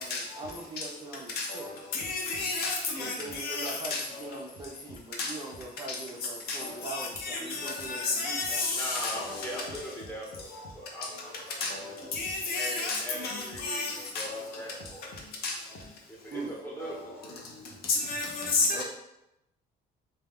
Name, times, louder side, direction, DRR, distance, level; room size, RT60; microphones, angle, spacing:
voice 1, 0.0-1.7 3.0-8.6 16.3-16.5 18.7-18.8, right 2 dB, 25° right, -1 dB, 0.4 m, -41 dB
voice 2, 1.9-4.0 5.2-5.3 6.5-6.6 6.8-9.5 11.6-11.8 12.2-14.4 15.4-15.5 16.8-16.9 17.9-18.8, left 3 dB, 65° left, 0 dB, 0.6 m, -31 dB
voice 3, 8.7-12.1 12.5-15.1 16.1-17.4, equal, 15° left, -4 dB, 0.9 m, -41 dB
2.2 x 2.1 x 3.4 m, 0.87 s
cardioid pair, 110°, 17 cm